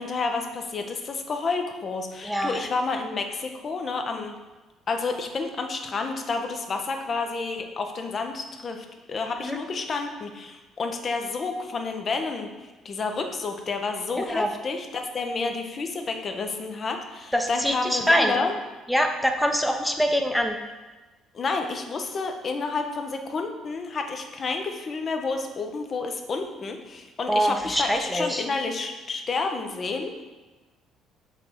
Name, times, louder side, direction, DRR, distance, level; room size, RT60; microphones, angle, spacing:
voice 1, 0.0-4.3 4.9-12.5 12.8-18.5 21.3-30.2, left 4 dB, 40° left, 5 dB, 0.7 m, -30 dB
voice 2, 2.2-2.6 9.4-9.6 14.2-14.5 17.3-18.3 18.9-20.6 27.3-28.4, equal, 5° left, 4 dB, 0.7 m, -24 dB
5.6 x 4.1 x 4.5 m, 1.2 s
figure-of-eight pair, 50°, 0 cm